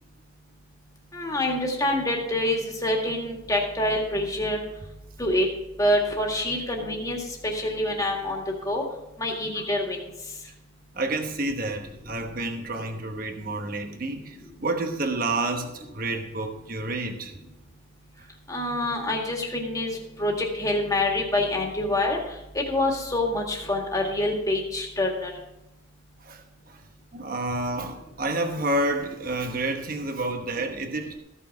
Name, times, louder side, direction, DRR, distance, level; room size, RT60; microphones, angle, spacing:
voice 1, 1.1-4.6 5.2-5.5 5.8-8.8 9.2-10.0 18.5-22.2 22.6-25.3, left 1 dB, 20° left, 0 dB, 1.9 m, -26 dB
voice 2, 10.9-17.4 18.2-18.3 26.2-26.8 27.1-31.1, right 2 dB, 50° right, 4 dB, 1.1 m, -29 dB
14.5 x 5.6 x 6.0 m, 0.91 s
head